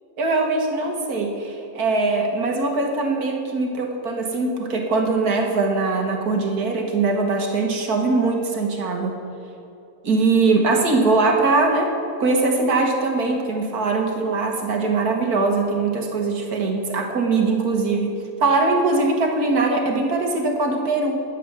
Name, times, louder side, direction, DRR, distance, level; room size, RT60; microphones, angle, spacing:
voice 1, 0.2-9.2 10.0-11.9 12.2-21.2, right 3 dB, 75° right, 2 dB, 2.0 m, -21 dB
12.0 x 8.7 x 7.0 m, 2.8 s
omnidirectional pair, 1.6 m